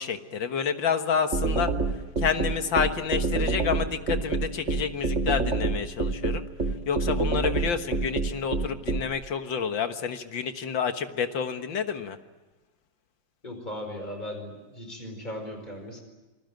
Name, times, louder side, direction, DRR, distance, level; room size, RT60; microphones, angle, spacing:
voice 1, 0.0-1.7 2.2-6.4 6.9-12.2, left 6 dB, 85° left, 8 dB, 2.2 m, -29 dB
sound 1, 1.3-9.0, right 3 dB, 40° right, 2.0 m, -26 dB
voice 2, 13.4-16.0, left 1 dB, 25° left, 5 dB, 5.1 m, -37 dB
28.0 x 20.5 x 9.2 m, 1.1 s
omnidirectional pair, 2.0 m